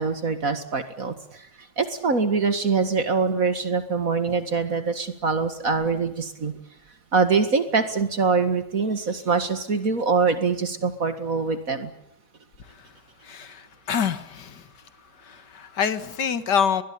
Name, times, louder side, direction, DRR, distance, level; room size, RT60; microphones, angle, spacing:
voice 1, 0.0-1.5 1.8-6.5 7.1-11.9, right 4 dB, 55° right, 9 dB, 2.3 m, -24 dB
voice 2, 13.2-14.7 15.2-16.8, left 7 dB, 80° left, 12 dB, 2.2 m, -26 dB
22.5 x 21.5 x 8.5 m, 0.81 s
omnidirectional pair, 1.8 m